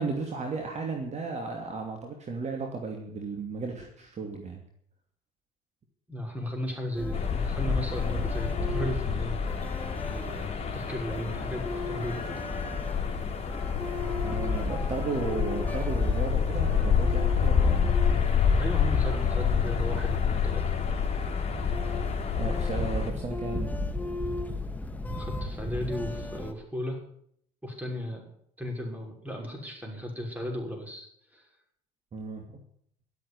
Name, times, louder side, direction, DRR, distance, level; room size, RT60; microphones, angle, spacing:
voice 1, 0.0-4.6 14.2-17.9 22.4-23.7 32.1-32.6, right 4 dB, 40° right, 3 dB, 2.6 m, -34 dB
voice 2, 6.1-9.4 10.1-12.4 18.6-20.6 25.0-27.0 27.6-28.2 28.6-31.1 31.3-31.4, equal, 10° right, 1 dB, 6.1 m, -35 dB
sound 1, 6.9-26.5, left 2 dB, 10° left, 2.0 m, -36 dB
sound 2, 7.1-23.1, left 7 dB, 40° left, 3.6 m, -28 dB
12.5 x 8.5 x 9.8 m, 0.67 s
supercardioid pair, 85°, 17 cm